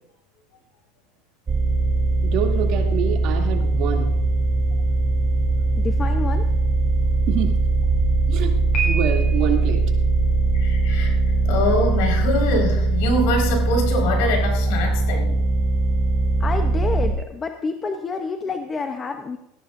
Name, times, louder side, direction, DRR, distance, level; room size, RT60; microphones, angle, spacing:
sound 1, 1.5-17.1, right 3 dB, 20° right, 0.9 m, -21 dB
voice 1, 2.2-4.2 7.3-7.5 8.3-8.5 8.8-9.8, right 9 dB, 55° right, 1 dB, 2.7 m, -26 dB
voice 2, 5.8-6.5 16.4-19.4, left 4 dB, 20° left, 6 dB, 0.8 m, -28 dB
Piano, 8.7-9.7, right 3 dB, 40° left, 5.4 m, -28 dB
voice 3, 10.5-11.2 11.4-15.4, left 2 dB, 75° left, 1 dB, 4.8 m, -24 dB
19.0 x 14.0 x 2.6 m, 0.85 s
supercardioid pair, 130°, 0 cm